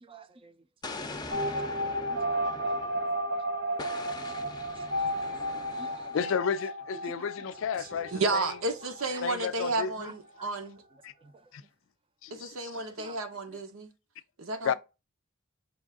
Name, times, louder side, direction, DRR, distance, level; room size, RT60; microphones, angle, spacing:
voice 1, 0.0-0.5 0.9-1.0 1.8-2.7 3.3-3.4 4.3-4.5 4.8-6.2 7.1-7.3 7.6-7.7 8.8-9.2 10.0-10.6 11.2-11.3 13.0-13.2, right 3 dB, 25° right, 0.5 m, -52 dB
Explosion, 0.8-3.3 3.8-6.3, left 2 dB, 20° left, 0.6 m, -42 dB
sound 1, 1.3-9.8 10.1-10.2 10.4-10.5, equal, 55° right, 0.9 m, -33 dB
voice 2, 6.1-8.5 9.2-10.1 11.0-11.1 12.2-13.1 14.6-14.7, left 7 dB, 65° left, 0.3 m, -32 dB
voice 3, 7.8-10.8 12.3-13.9 14.4-14.7, right 3 dB, 85° right, 1.0 m, -32 dB
5.2 x 2.6 x 3.6 m
head